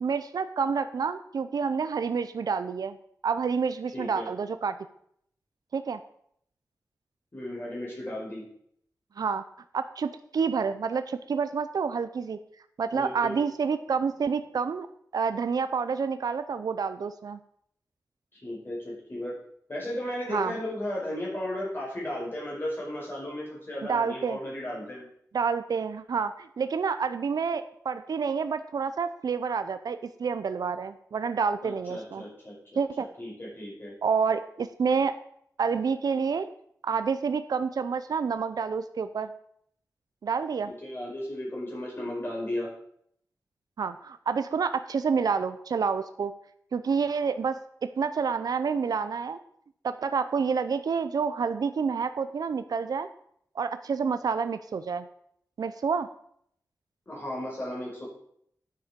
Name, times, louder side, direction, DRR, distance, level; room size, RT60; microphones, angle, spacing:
voice 1, 0.0-3.0 3.2-4.8 5.7-6.0 9.2-9.4 9.7-12.4 12.8-14.9 15.1-17.4 20.3-20.5 23.9-24.4 25.3-32.2 32.8-33.1 34.0-35.2 35.6-36.5 36.8-39.3 40.2-40.7 43.8-46.3 46.7-47.6 48.0-49.4 49.8-53.1 53.6-55.1 55.6-56.1, right 5 dB, 85° right, 11 dB, 0.5 m, -28 dB
voice 2, 3.9-4.3 7.3-8.4 12.9-13.4 18.3-19.3 19.7-25.1 31.6-32.5 33.0-33.9 40.6-42.7 57.1-58.1, left 1 dB, 35° left, -4 dB, 5.3 m, -35 dB
9.8 x 7.6 x 5.1 m, 0.69 s
wide cardioid pair, 120°, 6 cm